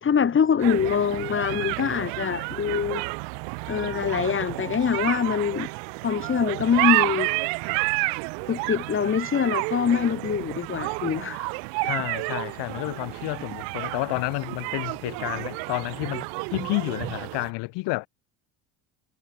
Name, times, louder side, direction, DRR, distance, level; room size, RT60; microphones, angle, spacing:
voice 1, 0.0-3.0 3.7-5.7 6.0-7.3 8.5-11.5, left 7 dB, 30° left, 2.8 m, -24 dB
sound 1, 0.6-17.5, right 36 dB, 90° right, 2.2 m, -30 dB
voice 2, 11.8-18.1, left 23 dB, 75° left, 2.6 m, -30 dB
cardioid pair, 120°, 41 cm